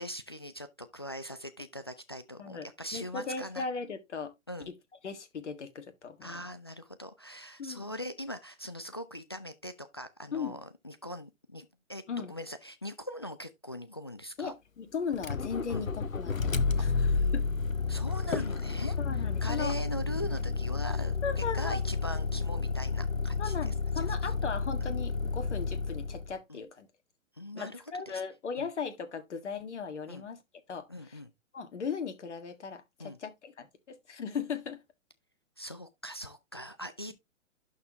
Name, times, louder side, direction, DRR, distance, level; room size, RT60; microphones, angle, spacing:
voice 1, 0.0-3.7 4.5-4.7 6.2-12.0 12.3-14.5 15.7-15.9 16.8-17.1 17.9-24.3 26.5-26.6 27.4-27.8 28.1-28.2 28.6-28.7 30.1-30.2 30.9-31.3 33.0-33.2 35.6-37.1, equal, 20° left, 0.3 m, -41 dB
voice 2, 2.4-4.3 4.7-4.8 5.0-6.3 7.6-7.9 10.3-10.6 12.1-12.3 14.4-17.5 19.0-19.8 21.2-21.8 23.4-26.9 27.5-30.4 30.7-31.2 31.5-34.8, left 6 dB, 60° left, 1.8 m, -37 dB
Motor vehicle (road), 15.1-26.3, left 4 dB, 85° left, 0.8 m, -31 dB
11.5 x 4.4 x 2.9 m
figure-of-eight pair, 120°, 40 cm